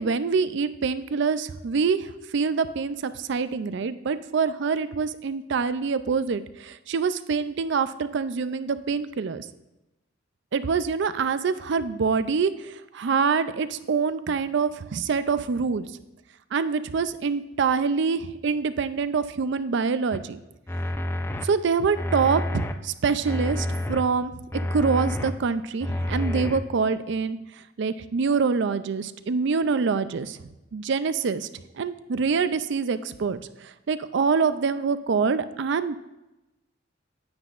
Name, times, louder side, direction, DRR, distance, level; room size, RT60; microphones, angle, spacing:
voice 1, 0.0-9.5 10.5-15.8 16.5-20.4 21.4-24.3 24.7-27.4 27.8-30.4 30.7-31.5 31.8-35.9, right 5 dB, 65° right, 13 dB, 0.4 m, -25 dB
sound 1, 20.1-20.2 20.7-21.5 21.9-22.7 23.2-24.0 24.5-25.3 25.8-26.6, left 1 dB, 10° left, 0.4 m, -28 dB
9.5 x 9.1 x 2.5 m, 0.97 s
head